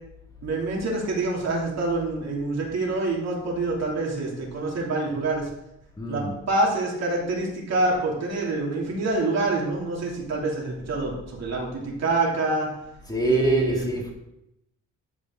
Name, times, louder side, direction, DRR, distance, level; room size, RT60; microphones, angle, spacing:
voice 1, 0.4-5.5 6.1-12.7 13.2-13.9, right 2 dB, 60° right, -2 dB, 2.9 m, -26 dB
voice 2, 6.0-6.4 13.1-14.1, right 2 dB, 10° left, -2 dB, 2.1 m, -25 dB
13.0 x 5.2 x 3.8 m, 0.85 s
cardioid pair, 90°, 30 cm